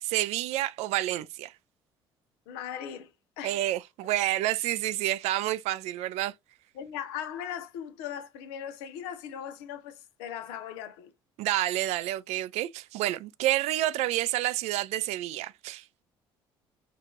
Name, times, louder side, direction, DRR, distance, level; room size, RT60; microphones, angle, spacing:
voice 1, 0.0-1.5 3.4-6.3 11.4-16.0, right 14 dB, 60° right, 0.4 m, -29 dB
voice 2, 2.5-3.1 3.4-3.6 6.7-11.1, left 9 dB, 75° left, 0.6 m, -38 dB
4.7 x 2.4 x 2.6 m
hypercardioid pair, 55°, 13 cm